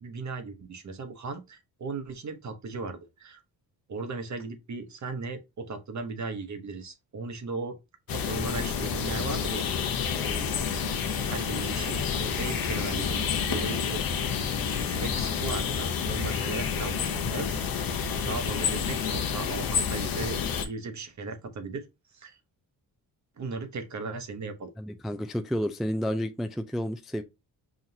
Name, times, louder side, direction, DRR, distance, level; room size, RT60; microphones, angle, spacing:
voice 1, 0.0-3.4 3.9-7.8 8.1-9.7 10.0-10.2 11.0-14.4 14.8-17.6 18.2-20.4 20.6-21.8 22.1-22.4 23.4-24.7, right 3 dB, 45° right, 0.9 m, -37 dB
sound 1, 8.1-20.7, left 6 dB, 60° left, 0.8 m, -29 dB
voice 2, 10.1-10.5 24.8-27.2, equal, ahead, 0.3 m, -31 dB
5.8 x 2.4 x 2.7 m
supercardioid pair, 65°, 40 cm